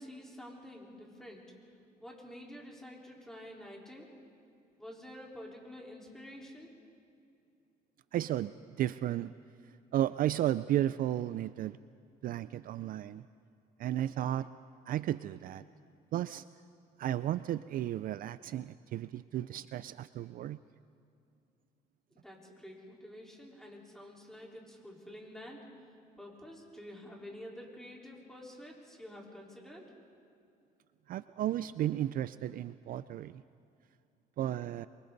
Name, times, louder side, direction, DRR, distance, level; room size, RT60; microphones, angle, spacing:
voice 1, 0.0-1.5 2.0-4.1 4.8-6.7 22.1-25.6 26.2-30.0, left 1 dB, 5° left, -3 dB, 4.3 m, -49 dB
voice 2, 8.1-9.3 9.9-11.8 12.2-13.2 13.8-14.5 14.9-15.6 16.1-16.4 17.0-20.6 31.1-33.4 34.4-34.9, right 12 dB, 55° right, 15 dB, 0.4 m, -33 dB
28.0 x 24.0 x 4.1 m, 2.5 s
cardioid pair, 110°, 17 cm